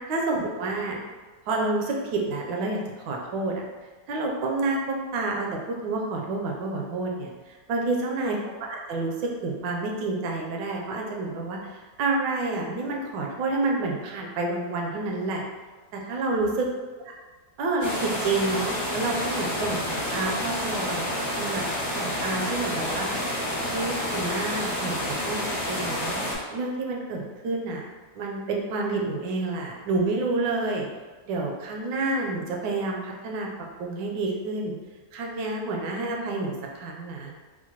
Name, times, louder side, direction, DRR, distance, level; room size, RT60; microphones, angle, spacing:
voice 1, 0.1-1.0 1.5-3.6 4.1-8.4 8.7-15.4 15.9-16.7 17.0-17.1 17.6-21.6 21.9-23.1 23.7-26.2 26.5-27.9 28.1-30.9 31.3-33.5 33.8-34.7 35.1-37.3, right 3 dB, 80° right, 0 dB, 1.2 m, -29 dB
sound 1, 17.8-26.3, left 1 dB, 40° left, 0.4 m, -29 dB
4.5 x 2.1 x 2.8 m, 1.3 s
omnidirectional pair, 2.0 m